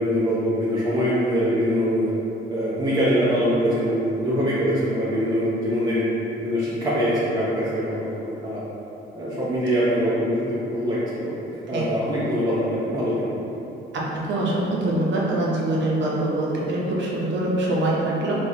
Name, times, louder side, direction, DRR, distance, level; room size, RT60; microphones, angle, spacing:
voice 1, 0.0-2.1 2.5-6.1 6.4-8.6 9.1-11.3 11.7-13.6, equal, 20° right, -9 dB, 0.6 m, -23 dB
voice 2, 13.9-18.3, right 1 dB, 65° right, -5 dB, 0.8 m, -24 dB
3.9 x 2.4 x 2.8 m, 2.9 s
cardioid pair, 90°, 20 cm